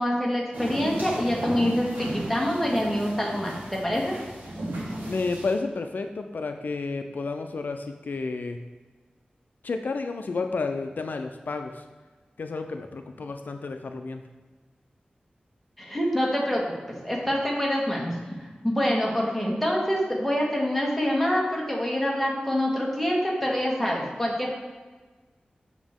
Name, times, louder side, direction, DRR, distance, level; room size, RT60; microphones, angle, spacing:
voice 1, 0.0-4.1 15.8-18.1 18.6-24.6, equal, 5° left, -3 dB, 1.6 m, -26 dB
sound 1, 0.5-5.6, right 1 dB, 85° right, 1.7 m, -34 dB
voice 2, 5.1-8.6 9.6-11.8 12.4-14.2, left 3 dB, 75° left, 6 dB, 0.4 m, -31 dB
7.2 x 6.0 x 3.6 m, 1.3 s
wide cardioid pair, 95°, 3 cm